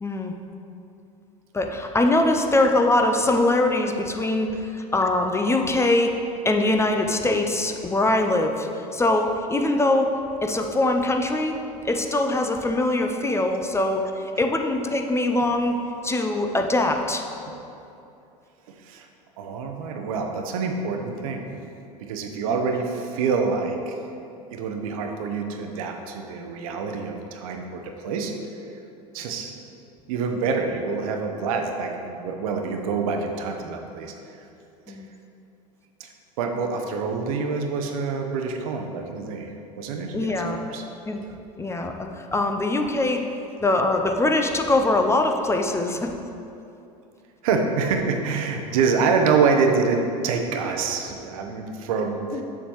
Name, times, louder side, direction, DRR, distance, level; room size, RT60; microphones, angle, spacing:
voice 1, 0.0-0.3 1.5-6.2 6.4-10.1 10.4-11.5 11.8-17.2 34.9-35.1 40.1-40.6 41.1-41.2 41.6-43.3 43.6-46.1 52.3-52.4, left 2 dB, 15° left, 4 dB, 0.6 m, -22 dB
voice 2, 18.7-19.1 19.4-21.5 22.0-24.0 24.5-28.3 29.1-29.6 30.1-34.4 34.9-35.0 36.0-36.1 36.4-39.5 39.8-40.8 47.4-52.4, right 5 dB, 70° right, 4 dB, 0.8 m, -26 dB
7.1 x 6.9 x 3.1 m, 2.7 s
hypercardioid pair, 75°, 19 cm